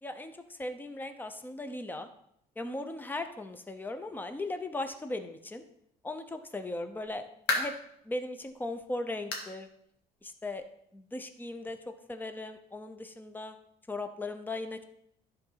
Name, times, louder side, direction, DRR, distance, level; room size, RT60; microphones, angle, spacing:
voice 1, 0.0-2.1 2.6-5.6 6.0-7.7 8.0-9.7 10.2-10.6 10.9-13.5 13.9-14.8, left 2 dB, 10° left, 8 dB, 0.8 m, -38 dB
sound 1, 6.8-7.9 8.4-8.5 9.3-9.6 9.9-10.0 10.5-10.6 11.7-11.8, left 3 dB, 80° left, 1.8 m, -33 dB
11.0 x 4.0 x 5.7 m, 0.74 s
cardioid pair, 110°, 17 cm